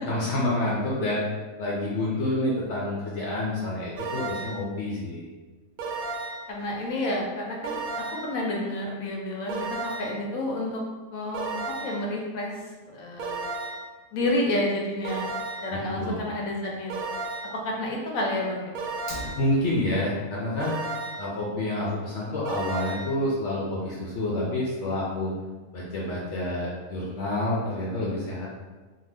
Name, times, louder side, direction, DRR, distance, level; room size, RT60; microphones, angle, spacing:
voice 1, 0.1-1.2 1.6-5.3 15.7-16.2 19.4-20.8 21.2-25.3 25.7-28.5, left 1 dB, 70° left, -5 dB, 0.8 m, -28 dB
sound 1, 4.0-4.7 5.8-6.5 7.6-8.4 9.5-10.2 11.3-12.1 13.2-13.9 15.0-15.8 16.9-17.6 18.8-19.5 20.6-21.3 22.5-23.2, right 3 dB, 85° right, 1.0 m, -33 dB
voice 2, 6.5-10.8 11.1-12.5 12.9-13.4 14.1-17.1 17.6-18.7, left 1 dB, 90° left, -1 dB, 1.1 m, -30 dB
Fire, 18.9-19.9, left 1 dB, 30° left, 0.8 m, -40 dB
2.7 x 2.2 x 3.3 m, 1.3 s
omnidirectional pair, 1.4 m